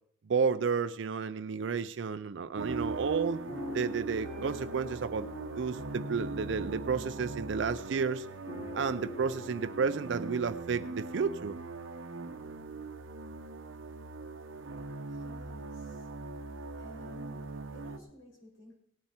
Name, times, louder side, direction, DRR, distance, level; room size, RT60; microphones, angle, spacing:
voice 1, 0.3-3.4 3.7-5.3 5.6-8.3 8.7-11.6, right 5 dB, 70° right, 10 dB, 0.4 m, -31 dB
sound 1, 2.6-18.0, right 3 dB, 85° right, 0.8 m, -40 dB
sound 2, 3.5-11.6 12.2-12.3 12.5-12.8, left 1 dB, 50° left, 3.1 m, -46 dB
voice 2, 15.1-16.1 16.7-18.8, equal, 80° left, -2 dB, 5.8 m, -53 dB
18.0 x 8.7 x 4.4 m, 0.67 s
head